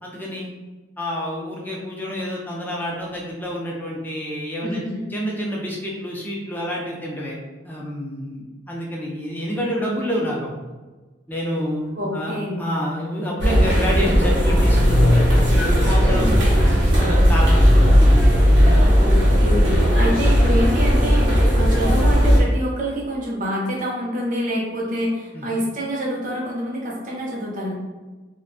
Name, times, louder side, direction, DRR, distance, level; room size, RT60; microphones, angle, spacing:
voice 1, 0.0-0.5 1.0-4.8 5.1-7.4 7.6-10.7 11.3-15.3 15.8-16.3 17.0-18.1 25.3-25.5, equal, 10° left, -3 dB, 0.4 m, -28 dB
voice 2, 4.6-5.1 12.0-12.6 16.0-16.4 19.0-27.7, equal, 45° right, -4 dB, 0.6 m, -26 dB
sound 1, 13.4-22.4, equal, 80° right, 0.9 m, -16 dB
2.4 x 2.2 x 2.6 m, 1.3 s
head